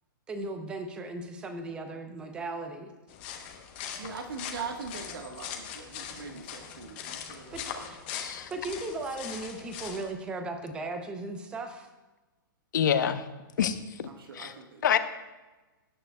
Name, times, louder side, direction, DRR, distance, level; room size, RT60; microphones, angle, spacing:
voice 1, 0.3-2.9 7.5-8.0 8.5-11.9, right 2 dB, 10° right, 6 dB, 0.6 m, -37 dB
sound 1, 3.1-10.1, left 8 dB, 25° left, 0.8 m, -41 dB
voice 2, 4.0-8.0 14.1-14.8, right 5 dB, 85° right, 3 dB, 1.4 m, -41 dB
voice 3, 8.1-8.5 12.7-13.2 13.6-13.8 14.3-14.5 14.8-15.0, left 8 dB, 60° left, 10 dB, 0.7 m, -26 dB
17.0 x 9.0 x 2.2 m, 1.2 s
hypercardioid pair, 170°, 12 cm